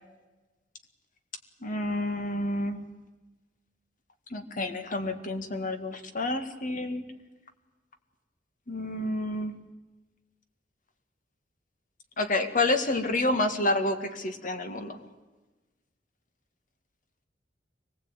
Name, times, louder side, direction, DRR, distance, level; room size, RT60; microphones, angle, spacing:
voice 1, 1.6-2.9 4.3-7.0 8.7-9.6 12.2-15.0, left 2 dB, 50° left, 8 dB, 1.8 m, -29 dB
24.0 x 19.5 x 8.9 m, 1.2 s
head